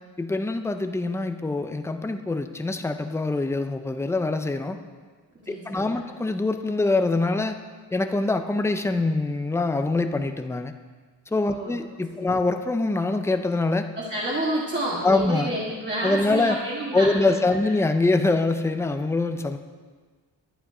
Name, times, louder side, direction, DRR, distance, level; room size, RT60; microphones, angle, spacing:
voice 1, 0.2-4.8 5.5-7.6 7.9-10.7 11.3-13.9 15.0-15.5 16.0-16.6 16.9-19.6, left 2 dB, 5° left, 7 dB, 0.4 m, -24 dB
voice 2, 5.5-6.0 11.5-11.7 12.1-12.3 13.9-17.2, right 1 dB, 25° right, -6 dB, 1.7 m, -29 dB
11.5 x 10.5 x 4.9 m, 1.5 s
wide cardioid pair, 160°, 42 cm